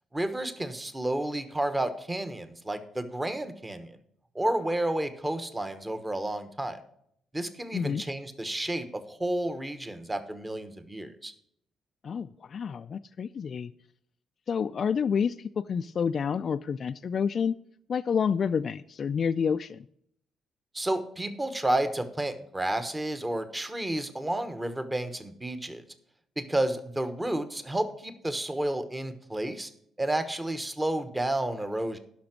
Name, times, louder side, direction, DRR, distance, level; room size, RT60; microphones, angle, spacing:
voice 1, 0.1-3.9 4.3-6.8 7.3-11.3 20.7-25.8 26.4-29.7 30.0-32.0, right 1 dB, 15° right, 10 dB, 1.2 m, -31 dB
voice 2, 7.7-8.0 12.0-13.7 14.5-17.6 17.9-19.9, left 6 dB, 50° left, 9 dB, 0.3 m, -29 dB
11.5 x 5.9 x 6.0 m, 0.70 s
cardioid pair, 90°, 0 cm